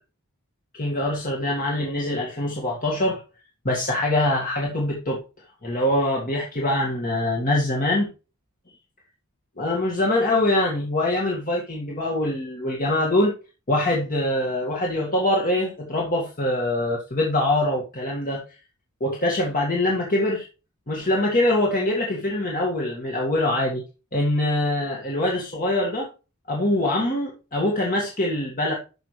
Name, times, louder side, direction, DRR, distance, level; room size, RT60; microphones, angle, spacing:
voice 1, 0.7-3.2 3.7-5.2 5.6-8.1 9.6-13.3 13.7-18.4 19.0-20.5 20.9-23.8 24.1-26.1 26.5-28.7, left 1 dB, 40° left, 1.9 m, -23 dB
12.0 x 5.9 x 3.2 m
head